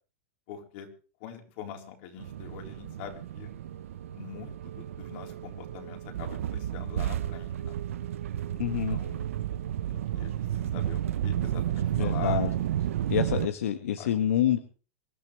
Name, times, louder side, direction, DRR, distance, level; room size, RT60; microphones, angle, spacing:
voice 1, 0.5-0.9 1.2-3.5 4.1-7.8 8.6-9.2 9.9-12.4 14.0-14.1, left 9 dB, 55° left, 2 dB, 3.8 m, -44 dB
sound 1, 2.2-13.5, right 11 dB, 85° right, 0.7 m, -32 dB
voice 2, 8.6-9.0 11.9-12.5 13.1-14.6, left 10 dB, 90° left, 7 dB, 1.4 m, -27 dB
25.5 x 12.5 x 3.3 m, 0.37 s
supercardioid pair, 145°, 7 cm